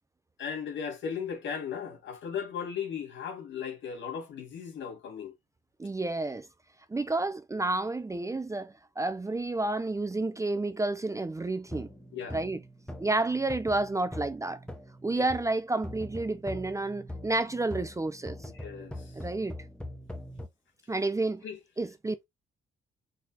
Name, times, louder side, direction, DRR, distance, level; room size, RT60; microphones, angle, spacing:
voice 1, 0.4-5.3 12.1-12.4 15.1-15.3 18.5-19.1 21.4-21.6, left 7 dB, 70° left, 2.0 m, -37 dB
voice 2, 5.8-6.5 6.9-11.9 12.3-12.6 13.0-14.6 15.0-18.5 19.1-19.6 20.9-21.5 21.8-22.2, right 2 dB, 15° right, 0.5 m, -30 dB
sound 1, 11.7-15.6 15.8-20.5, left 1 dB, 5° left, 1.1 m, -42 dB
4.2 x 4.1 x 2.8 m
cardioid pair, 90°, 20 cm